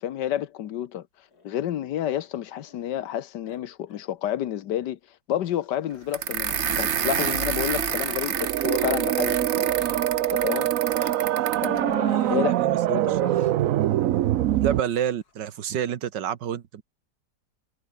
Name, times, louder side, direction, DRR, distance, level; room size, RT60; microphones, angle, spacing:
voice 1, 0.0-1.1 1.4-5.0 5.3-9.7 10.3-10.7 11.6-12.5 12.9-13.4, left 11 dB, 80° left, 1.5 m, -30 dB
Growling, 1.3-3.2 3.5-3.6 3.9-4.1 4.4-4.5 5.5-8.4 8.7-9.0 9.3-10.0 10.7-11.2 12.0-12.5 13.3-13.5 14.7-15.3, left 4 dB, 60° left, 3.2 m, -49 dB
sound 1, 6.1-11.8, right 8 dB, 45° right, 1.2 m, -28 dB
sound 2, 8.3-14.8, right 13 dB, 65° right, 0.9 m, -24 dB
voice 2, 12.3-13.2 14.6-16.8, right 9 dB, 85° right, 1.9 m, -29 dB
omnidirectional pair, 1.9 m